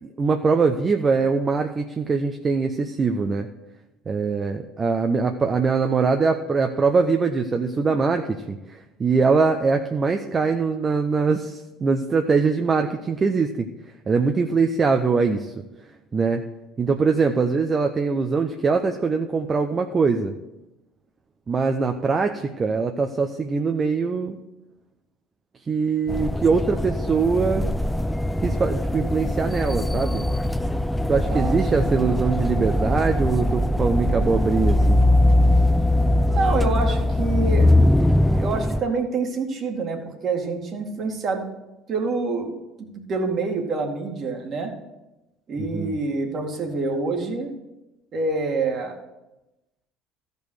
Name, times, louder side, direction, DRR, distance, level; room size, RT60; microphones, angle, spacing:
voice 1, 0.0-3.5 4.1-13.7 14.1-15.5 16.1-16.4 16.8-20.3 21.5-24.4 25.7-27.6 28.4-30.2 31.1-35.0 45.6-45.9, right 4 dB, 35° right, 5 dB, 0.8 m, -22 dB
sound 1, 26.1-38.8, left 1 dB, 5° left, 0.4 m, -21 dB
voice 2, 31.3-31.9 36.3-37.7 38.0-38.1 38.4-41.5 41.9-44.7 45.5-47.5 48.1-49.0, right 3 dB, 50° right, 2 dB, 2.2 m, -27 dB
14.0 x 5.3 x 6.4 m, 0.98 s
hypercardioid pair, 75°, 0 cm